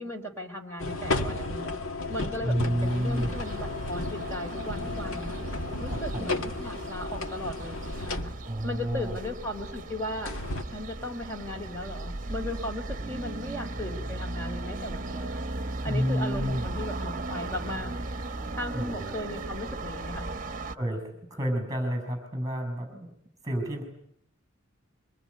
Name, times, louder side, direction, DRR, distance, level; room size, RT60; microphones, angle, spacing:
voice 1, 0.0-1.8 2.1-5.4 5.8-8.3 8.6-10.3 10.7-15.4 15.8-17.9 18.6-20.3, left 1 dB, 15° left, 3 dB, 3.6 m, -37 dB
sound 1, 0.8-8.7 10.3-10.7, left 2 dB, 85° left, 1.9 m, -33 dB
voice 2, 2.4-3.4 5.9-6.4 8.5-9.2 15.8-16.7 18.7-19.2 20.7-21.0 21.3-23.1 23.4-23.8, equal, 15° right, 7 dB, 6.1 m, -30 dB
sound 2, 2.8-20.8, right 2 dB, 40° right, 1.3 m, -37 dB
25.0 x 23.5 x 9.5 m, 0.71 s
head